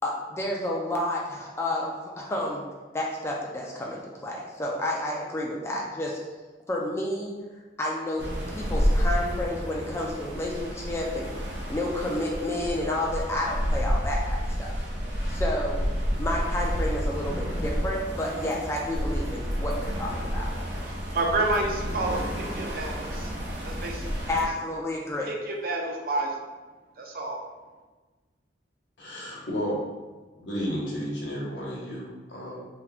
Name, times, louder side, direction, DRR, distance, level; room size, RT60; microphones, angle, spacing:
voice 1, 0.0-2.7 2.9-6.2 6.7-7.4 7.8-11.3 11.7-14.8 15.3-15.8 16.2-20.5 24.3-25.3, left 1 dB, 15° left, -2 dB, 0.3 m, -30 dB
sound 1, 8.2-24.5, equal, 75° right, 0.8 m, -30 dB
voice 2, 21.1-23.3 23.6-24.2 25.3-26.4 27.0-27.4, right 2 dB, 55° right, 0 dB, 0.5 m, -29 dB
voice 3, 29.0-29.8 30.3-32.6, equal, 80° left, -4 dB, 1.0 m, -32 dB
2.8 x 2.2 x 4.0 m, 1.3 s
head